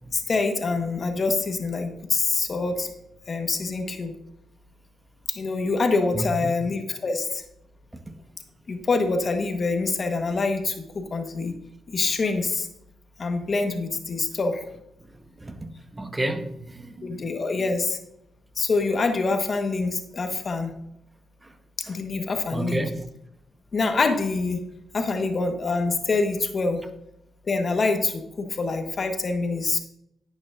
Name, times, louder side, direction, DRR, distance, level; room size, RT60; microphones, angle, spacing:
voice 1, 0.1-2.9 3.3-4.1 5.3-7.4 8.7-11.5 11.9-12.7 13.2-14.7 17.0-18.0 18.6-20.7 21.8-22.9 23.7-24.6 24.9-26.8 27.4-29.8, left 3 dB, 50° left, 1.3 m, -25 dB
voice 2, 15.4-17.2 22.5-22.9, right 1 dB, 20° right, 1.1 m, -31 dB
10.5 x 8.7 x 2.6 m
hypercardioid pair, 45°, 0 cm